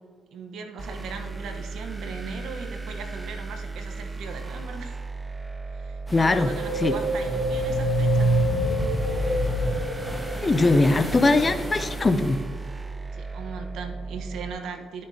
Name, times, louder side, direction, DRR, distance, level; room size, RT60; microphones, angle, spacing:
voice 1, 0.3-4.9 5.7-8.3 13.1-15.0, right 4 dB, 75° right, 5 dB, 1.0 m, -38 dB
sound 1, 0.8-14.5, right 4 dB, 20° right, 0.5 m, -36 dB
voice 2, 6.1-7.0 10.4-12.4, left 2 dB, 25° left, 10 dB, 0.6 m, -21 dB
sound 2, 6.1-12.5, equal, ahead, 1.3 m, -39 dB
sound 3, 6.3-10.9, right 1 dB, 65° left, 1.7 m, -25 dB
12.5 x 6.4 x 2.8 m, 2.1 s
cardioid pair, 90°, 0 cm